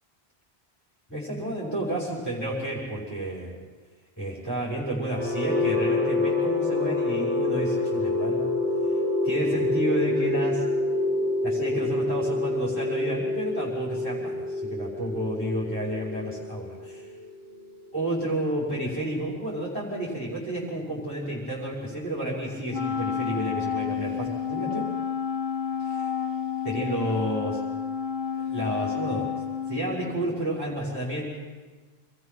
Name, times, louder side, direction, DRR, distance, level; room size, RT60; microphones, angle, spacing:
voice 1, 1.1-3.5 4.2-8.5 9.2-10.6 11.4-17.1 17.9-24.8 26.6-27.6 28.4-29.3 29.7-31.4, right 1 dB, 10° left, -7 dB, 6.0 m, -31 dB
sound 1, 5.0-18.9, left 2 dB, 45° right, 8.1 m, -27 dB
Wind instrument woodwind instrument, 22.7-30.4, left 7 dB, 65° left, 1.2 m, -30 dB
28.0 x 21.5 x 6.1 m, 1.4 s
omnidirectional pair, 1.1 m